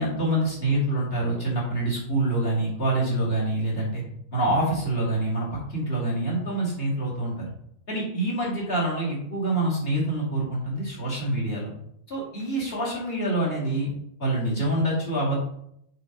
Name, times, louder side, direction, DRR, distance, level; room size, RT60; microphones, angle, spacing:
voice 1, 0.0-4.0 4.3-7.4 7.9-11.7 12.1-13.9 14.2-15.4, right 1 dB, 20° left, -5 dB, 2.7 m, -26 dB
8.1 x 4.0 x 5.4 m, 0.73 s
omnidirectional pair, 3.6 m